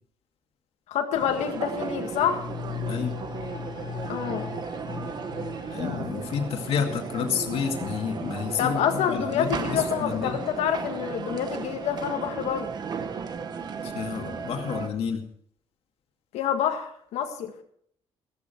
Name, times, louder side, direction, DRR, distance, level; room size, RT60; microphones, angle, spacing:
voice 1, 0.9-2.4 4.1-4.5 8.6-12.7 16.3-17.5, left 8 dB, 90° left, 4 dB, 1.7 m, -27 dB
sound 1, 1.1-14.9, right 5 dB, 40° right, 1.1 m, -35 dB
sound 2, 1.7-11.1 11.4-11.5, left 9 dB, 45° left, 3.0 m, -40 dB
voice 2, 2.9-3.2 5.6-10.4 13.8-15.3, left 7 dB, 60° left, 4 dB, 2.2 m, -30 dB
14.5 x 14.0 x 4.5 m, 0.64 s
cardioid pair, 150°, 11 cm